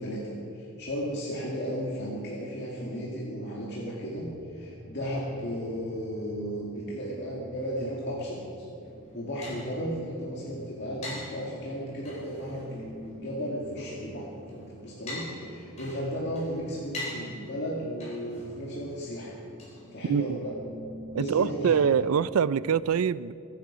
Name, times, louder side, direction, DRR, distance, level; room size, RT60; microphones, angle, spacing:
voice 1, 0.0-8.7 9.1-19.4 19.9-20.5 21.1-21.8, equal, 55° left, -5 dB, 2.1 m, -34 dB
sound 1, 4.1-22.8, equal, 75° left, 3.9 m, -50 dB
sound 2, 8.8-20.5, left 2 dB, 30° left, 4.4 m, -45 dB
voice 2, 21.1-23.3, right 7 dB, 90° right, 19 dB, 0.4 m, -24 dB
22.0 x 9.2 x 5.0 m, 2.6 s
head